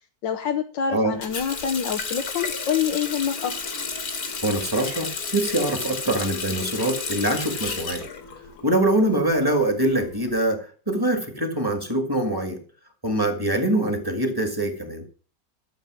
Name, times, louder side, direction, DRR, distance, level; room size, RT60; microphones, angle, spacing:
voice 1, 0.2-3.8, left 8 dB, 80° left, 4 dB, 1.7 m, -26 dB
Water tap faucet, 1.2-9.0 9.3-10.3, left 4 dB, 55° left, 2.1 m, -32 dB
voice 2, 4.4-8.1 8.6-12.6 13.0-15.0, right 1 dB, 10° right, 5 dB, 2.0 m, -24 dB
13.0 x 7.3 x 6.3 m, 0.40 s
omnidirectional pair, 1.9 m